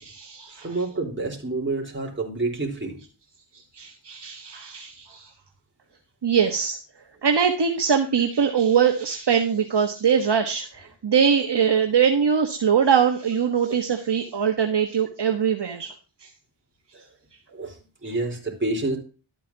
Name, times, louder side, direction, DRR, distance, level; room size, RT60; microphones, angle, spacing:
voice 1, 0.0-0.7 3.7-5.3 6.2-6.8 7.2-15.9 16.2-16.3, right 7 dB, 55° right, 4 dB, 1.4 m, -22 dB
voice 2, 0.6-3.0 13.7-13.8 16.9-17.0 17.5-19.0, right 2 dB, 25° right, 0 dB, 4.1 m, -28 dB
12.5 x 9.0 x 2.9 m, 0.35 s
cardioid pair, 65°, 49 cm